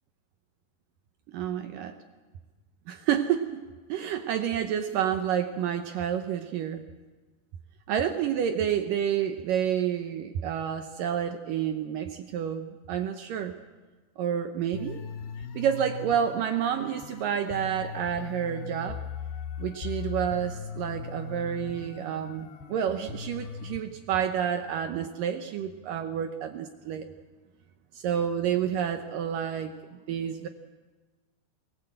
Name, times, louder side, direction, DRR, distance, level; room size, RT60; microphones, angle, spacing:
voice 1, 1.3-2.0 2.9-3.6 3.9-6.8 7.9-13.5 14.2-15.0 15.5-19.0 19.6-27.1 27.9-30.5, right 9 dB, 75° right, 7 dB, 2.1 m, -29 dB
sound 1, 14.7-23.8, left 5 dB, 70° left, 3.4 m, -39 dB
23.5 x 19.0 x 7.9 m, 1.3 s
omnidirectional pair, 4.8 m